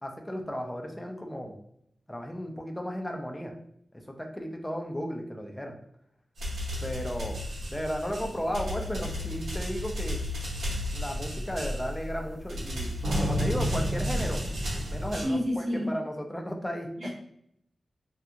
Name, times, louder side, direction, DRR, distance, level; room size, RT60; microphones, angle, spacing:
voice 1, 0.0-1.6 2.1-3.5 4.2-5.7 6.8-7.4 7.7-10.2 10.9-12.9 13.2-14.4 14.9-17.1, equal, 10° left, 2 dB, 0.5 m, -34 dB
sound 1, 6.4-15.3, equal, 85° right, 0.9 m, -32 dB
voice 2, 15.1-15.9 17.0-17.1, equal, 55° right, -7 dB, 0.7 m, -29 dB
2.4 x 2.3 x 2.8 m, 0.73 s
cardioid pair, 70°, 0 cm